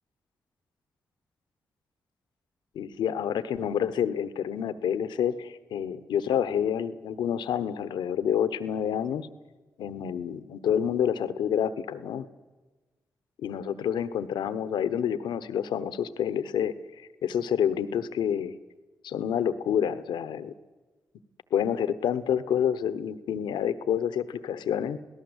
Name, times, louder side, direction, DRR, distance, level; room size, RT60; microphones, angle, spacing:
voice 1, 2.7-9.3 9.8-12.3 13.4-16.7 17.2-18.6 19.0-20.5 21.5-25.0, left 8 dB, 80° left, 13 dB, 1.0 m, -28 dB
28.0 x 17.5 x 8.0 m, 1.3 s
supercardioid pair, 40°, 8 cm